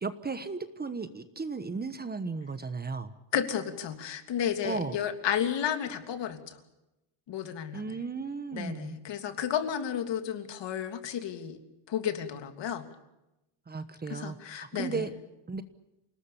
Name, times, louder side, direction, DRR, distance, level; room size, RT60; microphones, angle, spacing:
voice 1, 0.0-3.1 4.6-5.0 7.7-9.0 13.7-15.1 15.5-15.6, right 4 dB, 20° right, 11 dB, 1.2 m, -35 dB
voice 2, 3.3-6.6 7.3-8.0 8.5-11.6 11.9-12.9 14.1-15.1, left 9 dB, 55° left, 7 dB, 3.1 m, -32 dB
28.5 x 19.5 x 7.0 m, 0.93 s
cardioid pair, 155°, 50 cm